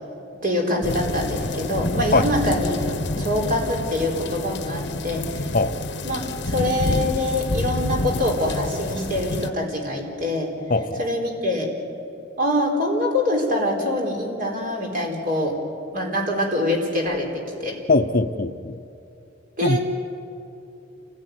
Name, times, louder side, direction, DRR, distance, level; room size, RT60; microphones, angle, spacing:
voice 1, 0.4-5.5 6.0-10.5 11.0-11.7 12.4-15.6 15.9-17.8 19.6-19.8, left 1 dB, 50° right, 0 dB, 4.4 m, -24 dB
sound 1, 0.8-9.5, left 2 dB, 65° left, 1.2 m, -28 dB
voice 2, 10.7-11.0 17.9-18.8 19.6-19.8, left 3 dB, 50° left, 9 dB, 0.7 m, -21 dB
28.5 x 16.5 x 9.5 m, 2.7 s
head